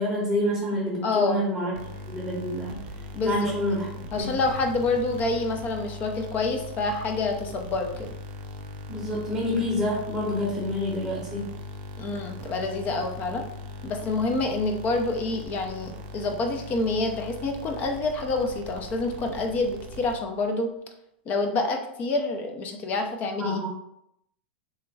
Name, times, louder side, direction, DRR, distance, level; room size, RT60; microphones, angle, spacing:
voice 1, 0.0-1.8 2.1-2.9 3.2-3.9 4.2-4.3 8.9-11.5 23.4-23.7, left 1 dB, 5° right, -6 dB, 0.8 m, -27 dB
voice 2, 1.0-1.4 3.1-3.4 4.1-8.1 12.0-13.4 13.8-20.7 21.3-23.6, left 3 dB, 30° left, 4 dB, 0.4 m, -27 dB
sound 1, 1.7-20.5, left 1 dB, 50° right, 0.5 m, -40 dB
3.3 x 2.1 x 3.3 m, 0.77 s
supercardioid pair, 145°, 6 cm